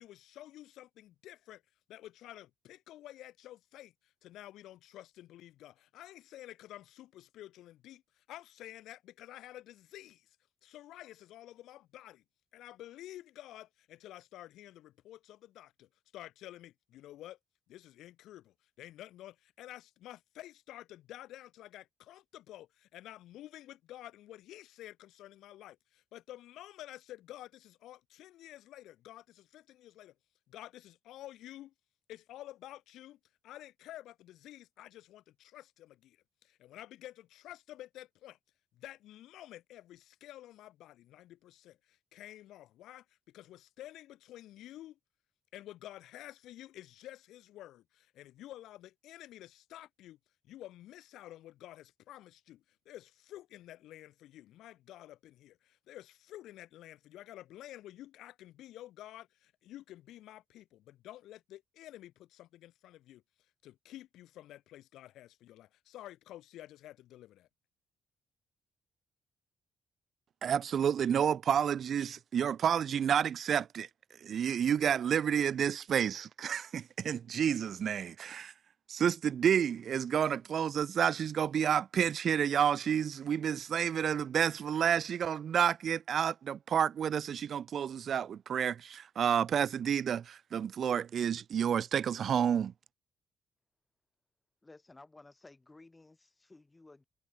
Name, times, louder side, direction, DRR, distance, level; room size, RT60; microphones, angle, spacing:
voice 1, 0.0-1.6 1.9-10.4 10.6-12.2 12.5-17.4 17.7-30.1 30.5-31.7 32.1-38.4 38.7-45.0 45.5-50.2 50.4-63.2 63.6-67.5, left 14 dB, 85° left, 3.1 m, -51 dB
voice 2, 70.4-73.9 74.2-78.5 78.9-92.7, right 8 dB, 60° right, 0.5 m, -30 dB
voice 3, 94.6-97.0, left 2 dB, 20° left, 2.7 m, -56 dB
cardioid pair, 90°, 0 cm